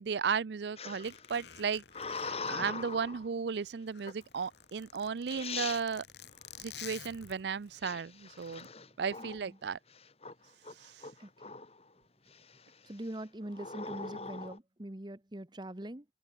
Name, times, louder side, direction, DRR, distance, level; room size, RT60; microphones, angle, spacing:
voice 1, 0.0-6.0 6.6-8.7 9.0-9.8 10.7-11.1, right 6 dB, 65° right, 0.5 m, -35 dB
sound 1, 0.8-3.3 4.0-4.4 5.0-5.1 5.3-5.8 7.8-9.5 9.9-10.3 10.6-11.8 12.3-12.7 13.5-14.6, left 4 dB, 35° left, 3.8 m, -41 dB
Zipper (clothing), 1.0-3.4 3.8-7.7 8.4-8.7, left 9 dB, 70° left, 3.7 m, -51 dB
voice 2, 11.2-11.5 12.8-16.0, right 1 dB, 25° right, 1.1 m, -43 dB
open air
head